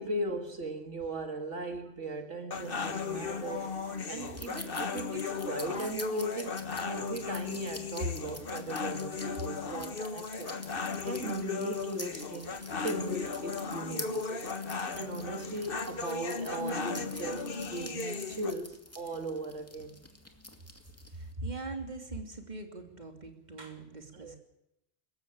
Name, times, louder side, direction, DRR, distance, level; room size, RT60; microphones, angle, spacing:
voice 1, 0.0-10.5 11.0-14.5 14.9-20.0 24.1-24.4, right 2 dB, 75° right, 6 dB, 2.3 m, -38 dB
sound 1, 2.5-18.5, left 5 dB, 50° left, 1.5 m, -36 dB
sound 2, 2.7-21.3, left 1 dB, 10° left, 2.3 m, -49 dB
voice 2, 21.1-24.4, right 2 dB, 35° right, 4 dB, 3.1 m, -41 dB
24.5 x 15.0 x 8.8 m, 0.83 s
omnidirectional pair, 1.2 m